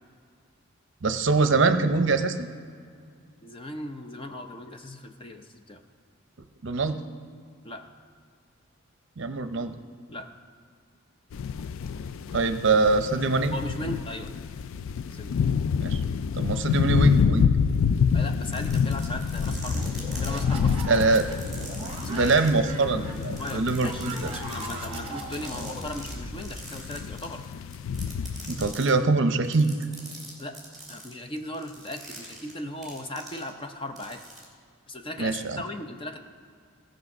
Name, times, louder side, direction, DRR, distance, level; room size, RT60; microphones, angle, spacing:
voice 1, 1.0-2.5 6.6-7.0 9.2-9.7 12.3-13.5 15.8-16.0 16.3-17.5 20.9-21.3 22.1-24.1 28.5-29.7 35.2-35.6, right 3 dB, 55° right, 9 dB, 0.6 m, -23 dB
voice 2, 3.4-5.8 7.6-7.9 10.1-10.3 13.5-14.3 15.1-15.5 18.1-19.8 20.1-21.0 22.0-22.3 23.3-27.5 30.4-30.6 30.9-34.2 34.9-36.2, left 1 dB, 25° left, 6 dB, 0.6 m, -37 dB
sound 1, 11.3-28.7, left 6 dB, 70° left, 0.3 m, -28 dB
sound 2, 18.4-20.4 21.1-22.5 23.1-26.1 26.4-27.4 27.7-28.9 29.4-33.7 34.0-34.4, right 2 dB, ahead, 2.4 m, -43 dB
sound 3, 19.4-26.8, right 2 dB, 25° right, 1.1 m, -38 dB
16.5 x 6.4 x 5.3 m, 2.2 s
head